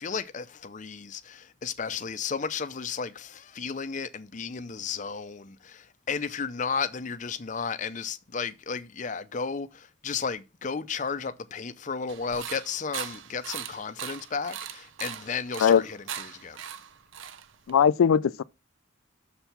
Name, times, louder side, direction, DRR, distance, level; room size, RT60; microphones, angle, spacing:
voice 1, 0.0-16.6, left 5 dB, 35° left, 0.5 m, -33 dB
sound 1, 12.1-17.8, right 9 dB, 70° right, 0.6 m, -39 dB
voice 2, 17.7-18.4, left 7 dB, 90° left, 0.4 m, -20 dB
6.8 x 4.5 x 6.7 m
head